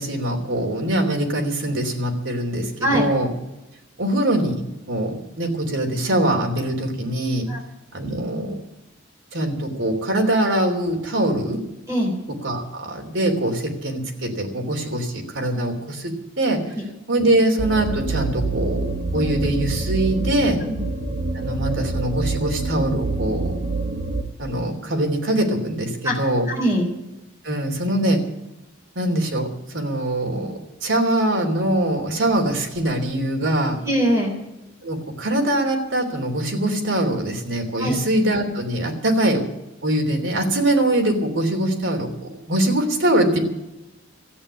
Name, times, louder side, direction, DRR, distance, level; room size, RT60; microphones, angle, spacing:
voice 1, 0.0-3.3 4.0-7.5 7.9-8.6 9.3-11.6 12.4-16.6 17.1-20.6 21.3-23.5 24.4-26.5 27.4-28.2 28.9-33.8 34.8-39.5 39.8-43.4, right 1 dB, 75° right, 2 dB, 3.3 m, -23 dB
sound 1, 17.6-24.2, right 3 dB, 50° right, 1.3 m, -26 dB
voice 2, 26.5-26.9 33.8-34.3 37.8-38.0, equal, 15° right, 0 dB, 3.7 m, -21 dB
14.0 x 8.7 x 9.7 m, 0.95 s
head